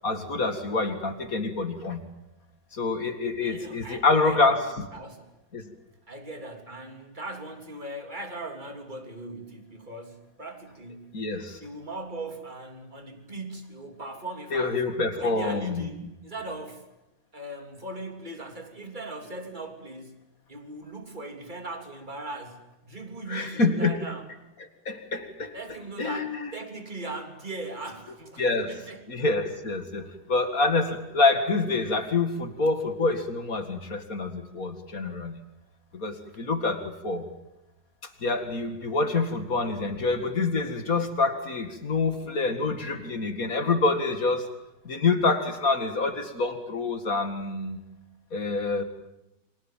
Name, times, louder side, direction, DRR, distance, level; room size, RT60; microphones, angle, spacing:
voice 1, 0.0-2.0 2.7-4.9 5.5-5.6 11.1-11.6 14.5-15.9 23.3-24.0 24.9-25.5 26.0-26.5 28.4-28.8 29.1-35.4 35.9-37.2 38.2-44.5 44.8-47.8 48.3-48.8, left 3 dB, 50° left, 8 dB, 2.6 m, -26 dB
voice 2, 3.4-4.6 4.9-5.3 6.1-11.1 11.6-14.8 15.2-16.9 17.3-20.2 20.5-24.3 25.5-29.0, right 2 dB, 25° right, 4 dB, 3.5 m, -39 dB
29.5 x 25.0 x 7.5 m, 0.94 s
omnidirectional pair, 2.0 m